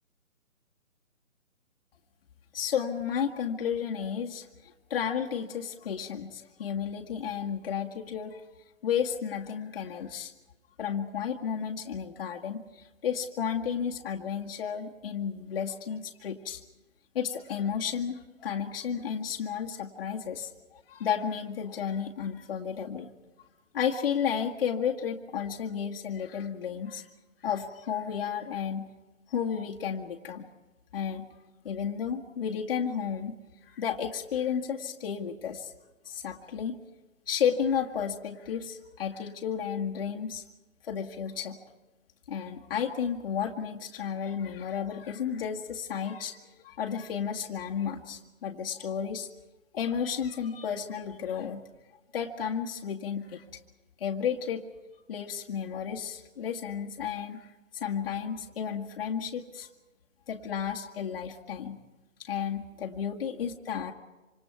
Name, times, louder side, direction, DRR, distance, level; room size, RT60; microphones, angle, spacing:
voice 1, 2.5-8.4 8.8-10.3 10.8-16.6 17.1-23.1 23.7-27.1 27.4-28.9 29.3-30.5 30.9-31.3 31.6-33.3 33.7-35.7 36.1-36.8 37.3-40.4 40.8-41.6 42.3-49.3 49.7-51.6 52.1-53.4 54.0-54.6 55.1-57.5 57.7-59.7 60.3-61.8 62.2-63.9, left 7 dB, 45° left, 0 dB, 2.0 m, -32 dB
26.5 x 26.5 x 4.7 m, 1.1 s
figure-of-eight pair, 140°, 41 cm